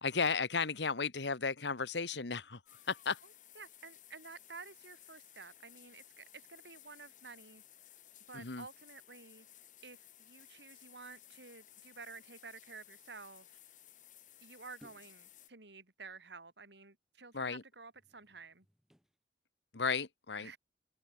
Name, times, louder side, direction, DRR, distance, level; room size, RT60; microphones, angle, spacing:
voice 1, 0.0-3.2 8.3-8.6 17.3-17.6 19.7-20.5, left 5 dB, 90° left, 1.4 m, -34 dB
sound 1, 2.7-15.5, left 12 dB, 45° left, 2.7 m, -59 dB
voice 2, 3.2-7.6 8.3-9.5 9.8-13.6 14.4-18.7 20.4-20.6, right 4 dB, 85° right, 4.5 m, -52 dB
sound 2, 14.8-15.3 17.9-19.2 19.7-19.9, equal, ahead, 3.1 m, -64 dB
head